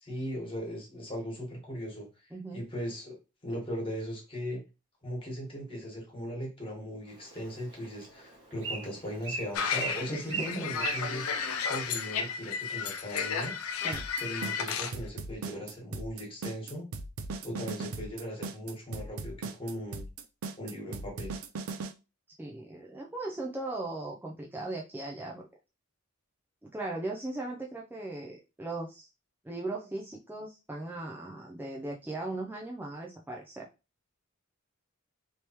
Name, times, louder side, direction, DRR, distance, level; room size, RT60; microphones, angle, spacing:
voice 1, 0.0-2.1 2.5-3.2 3.4-4.6 5.0-11.2 11.7-13.5 14.2-16.8 17.4-20.0 20.6-21.4, equal, 25° left, -1 dB, 1.5 m, -38 dB
voice 2, 2.3-2.6 10.1-10.7 13.8-14.0 22.4-25.4 26.6-29.1 29.4-33.7, right 2 dB, 10° right, -1 dB, 0.4 m, -38 dB
Bird, 7.1-12.2, right 4 dB, 60° right, 1.2 m, -40 dB
sound 1, 9.5-14.9, left 6 dB, 85° left, 0.4 m, -33 dB
sound 2, 13.9-21.9, right 3 dB, 85° right, 0.5 m, -38 dB
3.3 x 3.0 x 2.9 m, 0.28 s
head